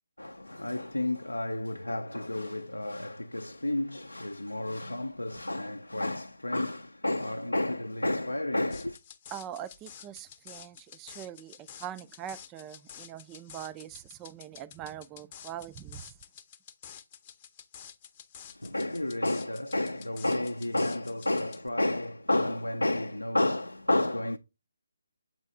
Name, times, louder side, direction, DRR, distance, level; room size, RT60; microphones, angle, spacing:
voice 1, 0.2-9.0 18.5-24.4, left 1 dB, 90° left, 0.4 m, -31 dB
sound 1, 8.7-21.7, left 9 dB, 25° left, 0.6 m, -50 dB
voice 2, 9.3-16.2, right 11 dB, 15° right, 0.3 m, -43 dB
7.4 x 4.0 x 3.6 m
figure-of-eight pair, 150°, 0 cm